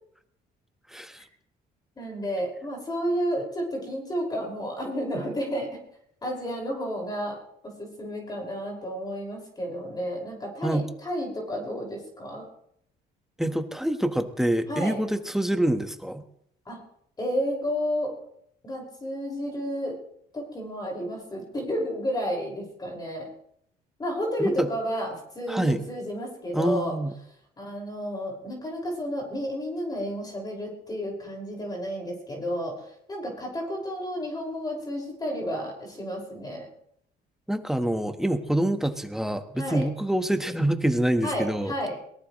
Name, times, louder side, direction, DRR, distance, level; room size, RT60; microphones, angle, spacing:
voice 1, 0.9-1.2 10.6-10.8 13.4-16.2 24.4-24.7 25.5-25.8 26.5-27.1 37.5-41.7, right 1 dB, ahead, 7 dB, 1.4 m, -26 dB
voice 2, 2.0-5.7 6.2-12.5 14.7-15.0 16.7-16.8 17.2-18.1 18.6-19.9 20.3-23.3 24.0-27.0 27.6-32.8 33.1-36.7 39.6-39.9 41.2-42.0, equal, 25° left, 0 dB, 5.6 m, -31 dB
22.0 x 19.0 x 3.2 m, 0.72 s
cardioid pair, 110°, 17 cm